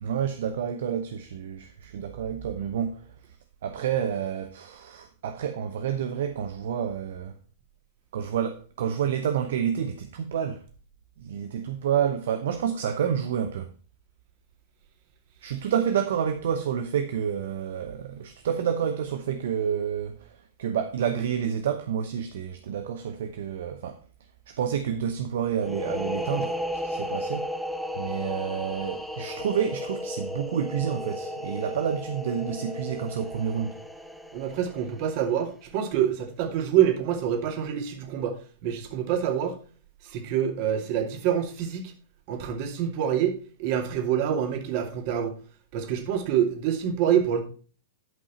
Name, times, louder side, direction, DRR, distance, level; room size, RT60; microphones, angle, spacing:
voice 1, 0.0-3.0 3.6-7.4 8.1-10.6 11.2-13.7 15.4-20.3 20.6-24.0 24.5-27.5 28.0-33.8, right 8 dB, 65° right, 0.8 m, -29 dB
sound 1, 25.6-35.1, left 1 dB, ahead, 1.0 m, -34 dB
voice 2, 34.3-38.3 38.6-39.6 40.0-41.8 42.3-45.3 45.7-47.4, right 9 dB, 50° right, 2.4 m, -26 dB
11.0 x 5.5 x 4.2 m
figure-of-eight pair, 100°, 0 cm